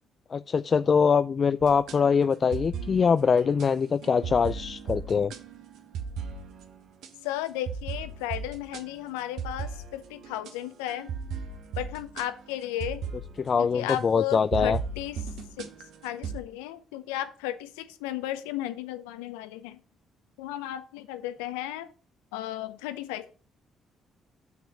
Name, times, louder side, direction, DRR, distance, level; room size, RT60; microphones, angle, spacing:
voice 1, 0.3-5.3 13.4-14.8, left 6 dB, 45° left, 0.3 m, -23 dB
sound 1, 1.6-7.3 7.7-14.0 14.3-16.4, right 5 dB, 70° right, 1.1 m, -37 dB
voice 2, 7.2-11.1 11.8-13.0 13.6-15.2 15.6-15.7 16.0-19.8 20.4-21.9 22.3-23.3, left 13 dB, 85° left, 0.7 m, -34 dB
7.3 x 5.9 x 5.9 m
hypercardioid pair, 55°, 0 cm